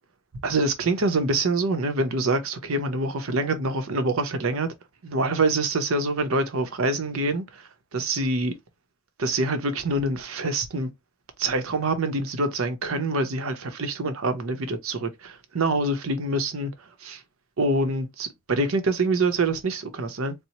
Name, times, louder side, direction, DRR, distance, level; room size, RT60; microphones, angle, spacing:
voice 1, 0.4-4.7 5.0-7.6 7.9-8.5 9.2-10.9 11.4-16.7 17.0-17.2 17.6-20.3, right 2 dB, 85° right, 0.7 m, -25 dB
4.2 x 2.0 x 2.8 m
head